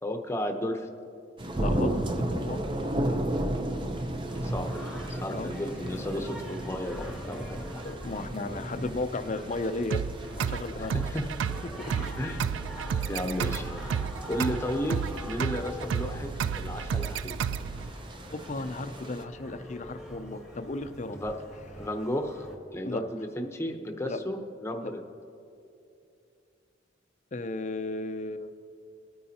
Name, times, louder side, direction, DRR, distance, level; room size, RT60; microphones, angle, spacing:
voice 1, 0.0-0.9 4.4-7.8 10.8-11.3 12.2-12.5 13.1-13.7 14.3-16.3 16.5-17.4 21.1-21.3 21.8-22.5 22.7-25.0, equal, 15° left, 4 dB, 0.8 m, -33 dB
sound 1, 1.4-19.2, right 1 dB, 25° right, 0.7 m, -35 dB
voice 2, 1.6-2.6 5.3-5.5 7.8-10.0 10.3-10.9 18.3-21.2 22.8-23.0 24.0-24.2 24.8-24.9 27.3-28.5, left 2 dB, 40° left, 9 dB, 0.5 m, -34 dB
Singing, 4.3-22.5, equal, 5° right, 1.3 m, -44 dB
sound 2, 9.9-17.9, right 7 dB, 80° right, 0.3 m, -32 dB
21.0 x 9.3 x 2.9 m, 2.6 s
head